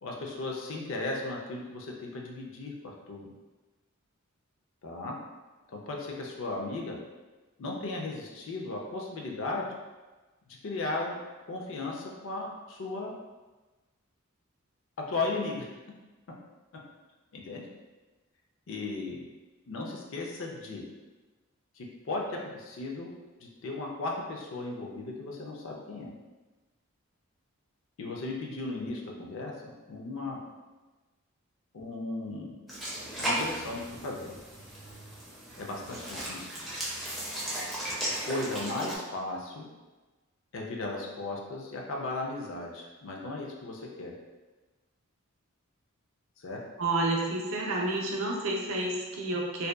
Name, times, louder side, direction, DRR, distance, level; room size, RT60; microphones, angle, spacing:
voice 1, 0.0-3.3 4.8-5.1 5.7-7.0 7.6-9.7 10.6-11.2 11.5-13.1 15.1-15.7 17.3-17.6 18.7-19.2 19.7-20.8 21.8-23.1 23.4-26.1 28.0-30.4 31.7-32.5 33.2-34.4 35.6-36.5 38.3-39.7 40.5-44.1 46.4-46.6, left 2 dB, 60° left, -1 dB, 0.4 m, -36 dB
sound 1, 32.7-39.0, right 1 dB, ahead, 0.4 m, -36 dB
voice 2, 46.8-49.7, right 2 dB, 65° right, -1 dB, 0.4 m, -30 dB
2.6 x 2.2 x 2.2 m, 1.2 s
head